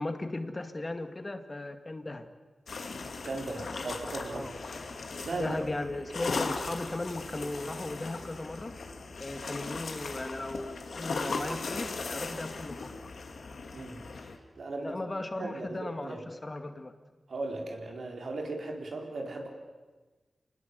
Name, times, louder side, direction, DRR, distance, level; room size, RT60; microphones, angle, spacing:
voice 1, 0.0-2.3 4.3-4.5 5.4-8.8 9.2-12.9 14.8-16.2 16.4-16.9, left 2 dB, 35° left, 7 dB, 2.1 m, -36 dB
sound 1, 2.7-14.4, left 4 dB, 80° left, 2.3 m, -38 dB
voice 2, 3.2-4.5 5.2-5.6 13.7-14.9 15.3-16.2 17.3-19.5, right 2 dB, 80° right, 2 dB, 4.5 m, -37 dB
27.5 x 19.5 x 8.3 m, 1.3 s
wide cardioid pair, 75°, 0 cm